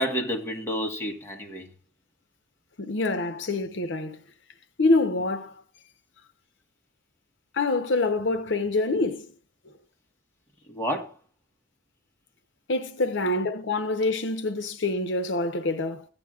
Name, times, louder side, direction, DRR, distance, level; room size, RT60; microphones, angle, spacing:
voice 1, 0.0-1.7 10.7-11.1, equal, 15° left, 1.3 m, -29 dB
voice 2, 2.8-4.2 4.8-5.6 7.5-9.3 12.7-16.1, left 2 dB, 75° left, 0.8 m, -26 dB
15.0 x 8.9 x 2.4 m
head